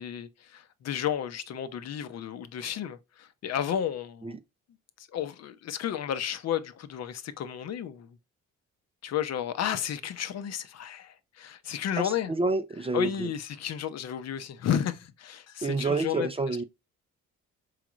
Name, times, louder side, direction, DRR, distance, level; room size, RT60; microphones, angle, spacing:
voice 1, 0.0-4.3 5.0-8.1 9.0-12.3 12.9-16.3, left 9 dB, 60° left, 0.6 m, -32 dB
voice 2, 12.0-13.3 15.6-16.6, right 3 dB, 20° right, 0.4 m, -29 dB
4.8 x 3.1 x 2.4 m
cardioid pair, 90°, 30 cm